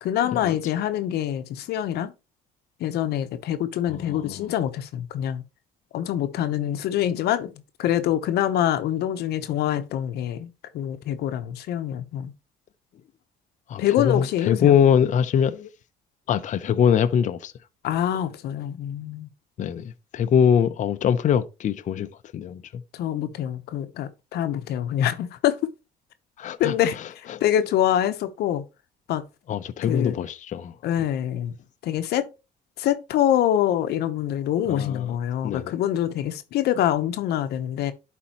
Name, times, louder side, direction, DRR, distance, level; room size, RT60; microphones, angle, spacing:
voice 1, 0.0-2.1 2.8-5.4 5.9-10.5 10.7-12.3 13.8-14.7 17.8-19.3 22.9-25.6 26.6-28.6 29.1-29.2 29.9-30.2 30.8-31.6 31.8-32.3 32.8-37.9, left 11 dB, 75° left, 0.8 m, -25 dB
voice 2, 3.9-4.5 13.7-15.7 16.3-17.5 19.6-22.1 22.3-22.8 26.4-26.7 27.3-27.4 29.5-30.7 34.7-35.1 35.4-35.7, left 8 dB, 45° left, 0.6 m, -23 dB
11.5 x 4.3 x 2.9 m
cardioid pair, 110°, 17 cm